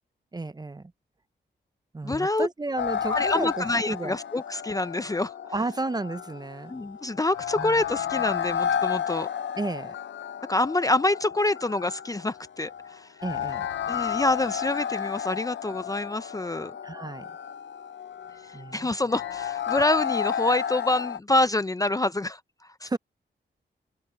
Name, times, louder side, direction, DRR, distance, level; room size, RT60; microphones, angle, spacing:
voice 1, 0.3-0.9 1.9-4.2 5.5-6.7 7.6-7.8 9.6-9.9 13.2-13.7 16.8-17.3 18.5-18.9 22.8-23.0, right 2 dB, 20° right, 0.7 m, -32 dB
voice 2, 2.0-2.5 3.1-5.3 6.7-9.3 10.5-13.1 13.9-16.8 18.5-22.4 22.8-23.0, left 2 dB, 20° left, 0.5 m, -26 dB
sound 1, 2.8-21.2, left 8 dB, 75° left, 0.7 m, -32 dB
open air
wide cardioid pair, 100°, 19 cm